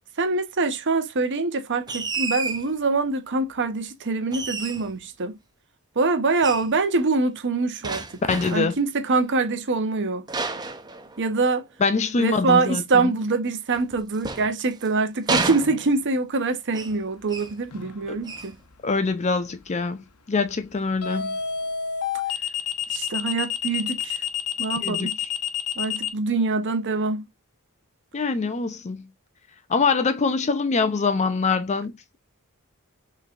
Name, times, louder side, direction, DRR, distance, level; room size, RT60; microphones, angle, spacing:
voice 1, 0.2-5.4 6.0-8.0 8.5-10.2 11.2-11.6 12.2-18.5 22.9-24.2 24.6-25.2 25.8-27.2, right 3 dB, 55° right, 0.8 m, -24 dB
sound 1, 1.9-2.7 4.3-5.0 6.4-6.7 7.8-8.8 10.3-11.5 13.7-14.9 15.3-16.2 16.7-17.0 17.3-17.6 18.2-18.6, right 3 dB, 20° right, 0.6 m, -30 dB
voice 2, 8.3-8.7 11.8-13.1 18.1-18.2 18.8-20.0 20.3-21.4 24.8-25.1 28.1-29.1 29.7-31.9, left 4 dB, 30° left, 0.5 m, -24 dB
sound 2, 17.7-18.0 21.0-26.1, left 8 dB, 85° left, 0.9 m, -28 dB
5.6 x 3.3 x 2.4 m
head